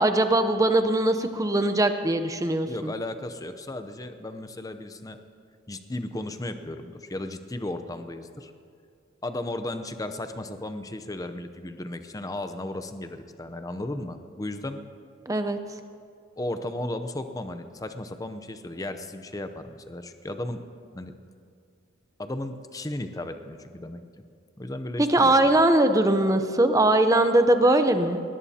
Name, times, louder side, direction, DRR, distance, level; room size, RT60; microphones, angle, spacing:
voice 1, 0.0-2.9 15.3-15.6 25.0-28.2, right 1 dB, 15° right, 8 dB, 0.7 m, -21 dB
voice 2, 2.7-5.2 5.7-8.5 9.2-14.8 16.4-20.6 20.9-21.1 22.2-24.0 24.6-25.5, left 1 dB, 20° left, 9 dB, 0.6 m, -35 dB
20.0 x 19.5 x 2.8 m, 2.3 s
head